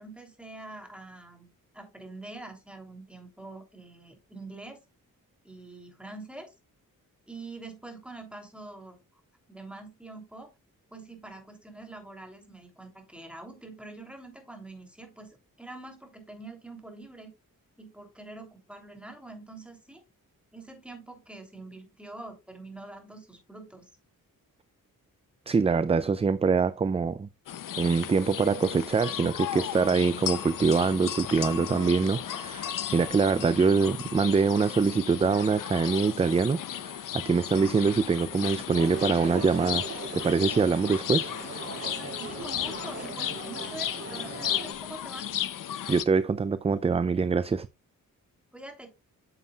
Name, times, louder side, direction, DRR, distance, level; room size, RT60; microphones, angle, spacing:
voice 1, 0.0-4.8 5.4-6.5 7.3-9.0 9.5-10.5 10.9-17.3 17.8-20.0 20.5-23.8 42.1-45.3 48.5-48.9, right 2 dB, 5° right, 3.1 m, -45 dB
voice 2, 25.5-27.3 27.8-39.8 40.1-41.3 45.9-47.7, right 5 dB, 20° right, 0.3 m, -24 dB
sound 1, 27.5-46.1, left 10 dB, 65° left, 0.7 m, -35 dB
sound 2, 38.7-44.7, right 3 dB, 45° right, 4.1 m, -39 dB
9.5 x 7.2 x 2.3 m
cardioid pair, 100°, 35 cm